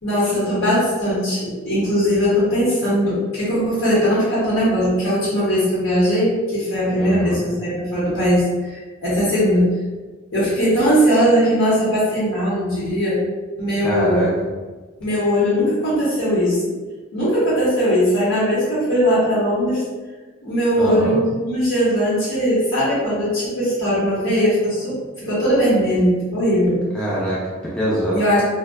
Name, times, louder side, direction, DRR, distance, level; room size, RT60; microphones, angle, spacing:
voice 1, 0.0-9.7 10.3-13.2 13.6-14.3 15.0-16.6 17.1-19.8 20.4-26.8 28.1-28.4, equal, 80° left, -9 dB, 1.0 m, -19 dB
voice 2, 7.0-7.4 13.8-14.3 20.8-21.2 26.9-28.2, right 1 dB, 5° left, -8 dB, 0.4 m, -23 dB
2.6 x 2.2 x 2.2 m, 1.3 s
head